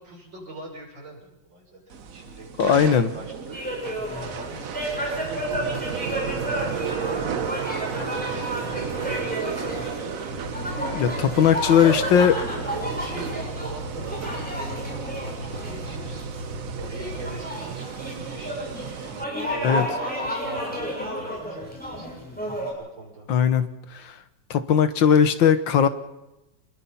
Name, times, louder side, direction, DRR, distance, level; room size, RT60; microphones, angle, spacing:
voice 1, 0.0-9.8 11.7-12.3 12.7-18.7 19.0-22.1 22.8-23.3, right 2 dB, 80° right, 0 dB, 7.2 m, -42 dB
sound 1, 1.9-19.2, right 7 dB, 50° right, 1.2 m, -34 dB
voice 2, 2.6-3.1 10.9-12.4 19.6-19.9 23.3-24.2 24.5-25.9, left 8 dB, 75° left, 11 dB, 1.9 m, -19 dB
sound 2, 3.5-22.7, equal, 5° left, 7.5 m, -32 dB
sound 3, 10.3-17.4, left 1 dB, 55° left, 8.3 m, -38 dB
27.5 x 21.0 x 5.6 m, 0.93 s
omnidirectional pair, 2.1 m